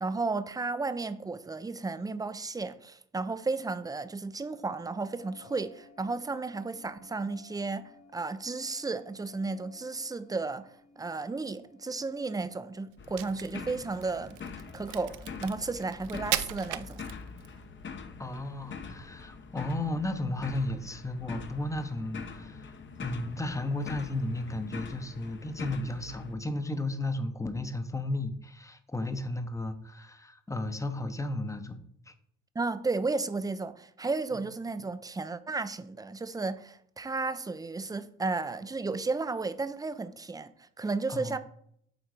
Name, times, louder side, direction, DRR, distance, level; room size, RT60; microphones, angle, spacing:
voice 1, 0.0-14.4 14.7-17.0 32.6-41.4, right 3 dB, 15° right, 0.5 m, -33 dB
sound 1, 4.8-12.9, left 6 dB, 65° left, 1.5 m, -57 dB
sound 2, 13.0-26.3, left 5 dB, 40° left, 0.8 m, -44 dB
Crack, 13.0-17.6, right 14 dB, 85° right, 0.5 m, -37 dB
voice 2, 18.2-22.6 23.0-32.1 41.1-41.4, left 2 dB, 10° left, 0.8 m, -34 dB
8.2 x 3.8 x 4.8 m
cardioid pair, 90°, 30 cm